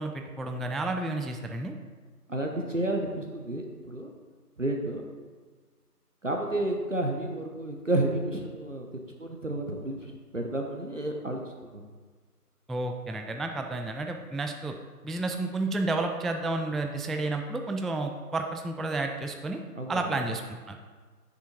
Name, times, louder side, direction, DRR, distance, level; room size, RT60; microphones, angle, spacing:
voice 1, 0.0-1.7 12.7-14.8 15.0-19.6 19.9-20.8, right 2 dB, ahead, 4 dB, 0.3 m, -31 dB
voice 2, 2.3-4.1 4.6-5.0 6.2-8.9 9.2-11.4 11.7-11.8 19.8-20.0, right 1 dB, 55° right, 2 dB, 0.7 m, -31 dB
6.8 x 6.8 x 3.0 m, 1.4 s
figure-of-eight pair, 170°, 47 cm